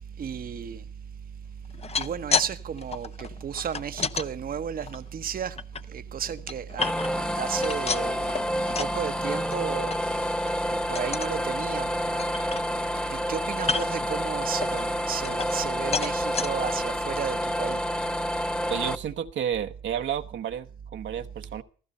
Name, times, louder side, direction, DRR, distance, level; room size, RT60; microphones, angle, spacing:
voice 1, 0.2-0.8 2.0-5.6 5.9-8.3 8.8-9.9 10.7-12.3 13.1-17.8, right 7 dB, 45° right, 1.0 m, -33 dB
sound 1, 1.7-2.5 2.8-4.3 4.8-5.8 6.3-7.3 7.6-9.0 9.3-9.6 9.9-10.0 10.4-10.6 11.0-11.4 11.8-11.9 12.2-13.0 13.6-14.1 14.6-15.7 15.9-16.5 17.1-17.2 17.5-17.6, left 5 dB, 30° left, 0.9 m, -31 dB
sound 2, 6.8-18.9, equal, 5° left, 0.9 m, -29 dB
voice 2, 18.7-21.6, right 9 dB, 70° right, 1.2 m, -31 dB
16.0 x 14.5 x 5.5 m
cardioid pair, 90°, 20 cm